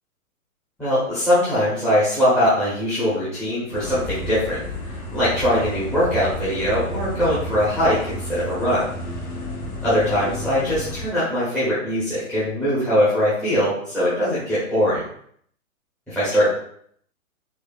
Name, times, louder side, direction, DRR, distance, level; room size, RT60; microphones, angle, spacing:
voice 1, 0.8-4.6 5.1-8.8 9.8-15.0 16.1-16.5, equal, 5° left, -12 dB, 0.9 m, -21 dB
sound 1, 3.7-11.1, left 1 dB, 80° left, 1.1 m, -32 dB
4.3 x 2.3 x 2.5 m, 0.64 s
hypercardioid pair, 130°, 43 cm